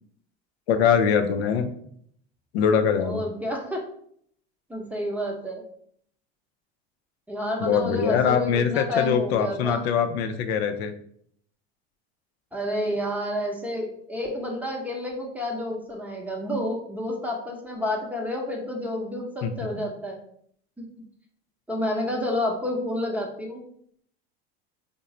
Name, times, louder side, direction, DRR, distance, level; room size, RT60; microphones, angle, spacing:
voice 1, 0.7-1.7 2.5-3.2 7.6-10.9 19.4-19.5 19.8-19.9, left 7 dB, 80° left, 7 dB, 0.5 m, -23 dB
voice 2, 3.0-3.8 4.7-5.6 7.3-9.8 12.5-20.2 20.8-20.9 21.7-23.6, left 1 dB, 5° right, 0 dB, 0.7 m, -29 dB
3.1 x 2.1 x 3.7 m, 0.65 s
supercardioid pair, 105°, 31 cm